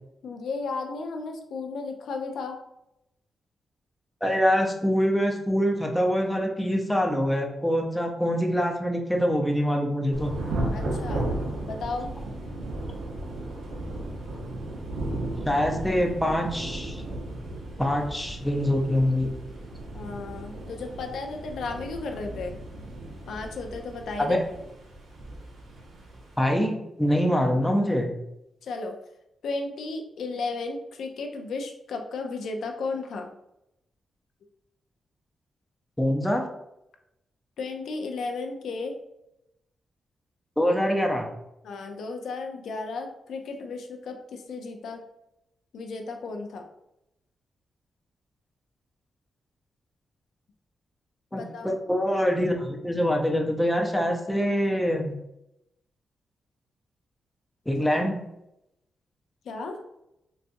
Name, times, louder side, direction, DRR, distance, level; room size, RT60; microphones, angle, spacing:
voice 1, 0.2-2.6 10.7-11.3 11.6-12.1 19.9-22.6 23.3-24.4 28.6-28.9 29.4-33.3 37.6-38.9 41.6-45.0 45.7-46.7 51.3-51.8 57.7-57.9 59.4-59.8, left 3 dB, 85° left, 4 dB, 0.4 m, -34 dB
voice 2, 4.2-10.3 15.5-17.0 17.8-19.3 24.2-24.4 26.4-28.1 36.0-36.5 40.6-41.3 51.3-55.1 57.7-58.2, equal, 5° left, 1 dB, 0.5 m, -24 dB
Thunder / Rain, 10.1-26.4, right 1 dB, 90° right, 0.8 m, -35 dB
4.0 x 2.3 x 2.5 m, 0.84 s
cardioid pair, 105°, 0 cm